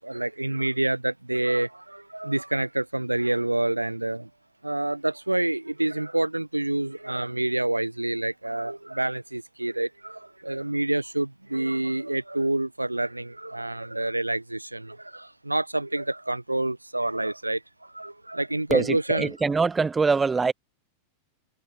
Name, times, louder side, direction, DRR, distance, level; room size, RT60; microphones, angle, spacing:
voice 1, 0.0-4.3 4.6-19.3, right 2 dB, 85° right, 0.9 m, -28 dB
voice 2, 18.7-20.5, right 4 dB, 15° right, 1.1 m, -23 dB
figure-of-eight pair, 90°, 0 cm